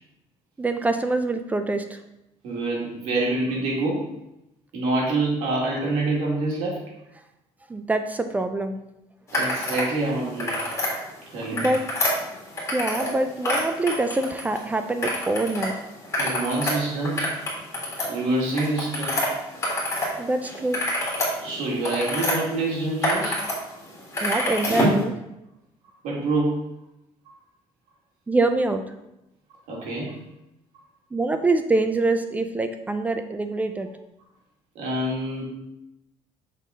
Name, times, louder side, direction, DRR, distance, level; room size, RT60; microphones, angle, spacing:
voice 1, 0.6-2.0 7.7-8.8 11.5-11.8 12.7-15.8 20.2-20.8 24.2-25.1 28.3-28.8 31.1-33.9, right 2 dB, 15° right, 8 dB, 0.3 m, -25 dB
voice 2, 2.4-4.0 4.7-6.8 9.3-10.6 11.3-11.7 16.2-17.3 18.1-19.2 21.4-23.4 26.0-26.6 29.7-30.2 34.8-35.4, right 2 dB, 80° right, -3 dB, 2.0 m, -26 dB
sound 1, 9.3-9.9 10.2-10.9 11.4-13.1 13.4-14.6 15.0-15.7 16.0-20.1 20.4-22.3 22.8-23.5 23.8-25.0, left 1 dB, 25° left, 1.9 m, -26 dB
6.4 x 3.8 x 3.9 m, 0.87 s
cardioid pair, 150°, 11 cm